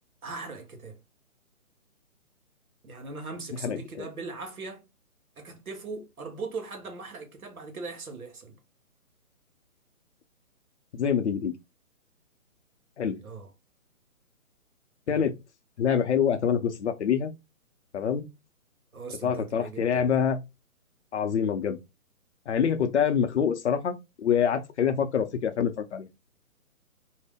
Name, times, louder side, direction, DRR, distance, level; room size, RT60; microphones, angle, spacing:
voice 1, 0.2-1.0 2.8-4.9 5.4-8.6 13.2-13.5 18.9-20.1, right 4 dB, 85° right, 1.2 m, -39 dB
voice 2, 3.6-4.1 10.9-11.5 13.0-13.2 15.1-15.3 15.8-17.3 17.9-18.3 19.2-20.4 21.1-21.8 22.5-26.1, left 7 dB, 55° left, 0.6 m, -26 dB
2.7 x 2.1 x 3.4 m
hypercardioid pair, 145°, 42 cm